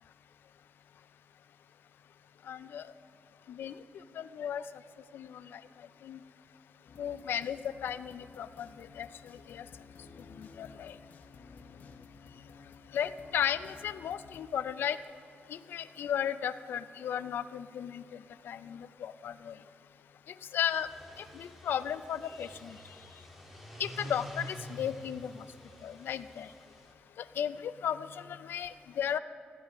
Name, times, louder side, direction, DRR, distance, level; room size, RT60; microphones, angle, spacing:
voice 1, 2.5-2.9 3.5-3.7 4.2-4.6 5.1-5.6 6.0-6.2 7.0-9.6 10.3-11.0 12.9-15.0 15.5-19.6 20.5-20.9 21.2-22.8 23.8-25.4 25.8-26.5 27.2-29.2, left 9 dB, 85° left, 14 dB, 0.4 m, -35 dB
sound 1, 6.8-14.4, left 4 dB, 55° left, 0.9 m, -54 dB
sound 2, 20.6-26.9, equal, 5° right, 2.1 m, -48 dB
15.0 x 12.0 x 3.6 m, 2.3 s
wide cardioid pair, 115°, 4 cm